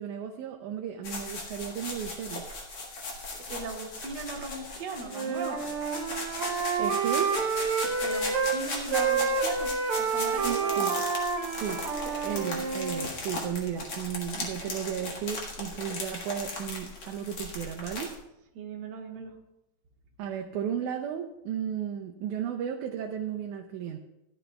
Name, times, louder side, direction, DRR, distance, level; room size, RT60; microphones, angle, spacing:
voice 1, 0.0-2.4 6.8-7.3 10.4-10.9 11.5-11.8 12.2-18.1 20.2-24.0, right 9 dB, 80° right, 2 dB, 2.1 m, -34 dB
sound 1, 1.0-18.1, left 2 dB, 45° left, 2.1 m, -37 dB
voice 2, 3.3-5.7 8.0-10.9 18.5-19.4, right 3 dB, 45° right, 0 dB, 1.5 m, -38 dB
Wind instrument woodwind instrument, 5.1-8.6 8.9-13.1, right 5 dB, 65° right, 1.4 m, -29 dB
16.5 x 11.0 x 2.3 m, 0.92 s
omnidirectional pair, 3.5 m